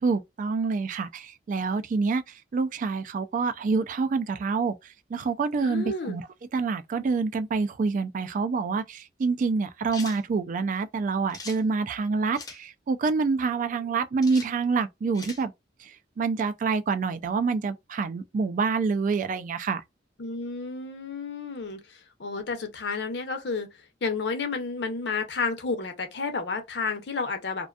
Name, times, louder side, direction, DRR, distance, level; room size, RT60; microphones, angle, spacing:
voice 1, 0.0-6.3 6.5-15.5 15.8-19.8, right 4 dB, 45° right, 0.3 m, -27 dB
voice 2, 5.6-6.2 20.2-23.7 24.0-27.7, left 4 dB, 70° left, 0.6 m, -31 dB
sound 1, 9.9-10.2 11.3-11.6 12.3-12.6 14.2-14.5 15.1-15.4, left 4 dB, 20° left, 0.5 m, -41 dB
2.5 x 2.2 x 2.3 m
head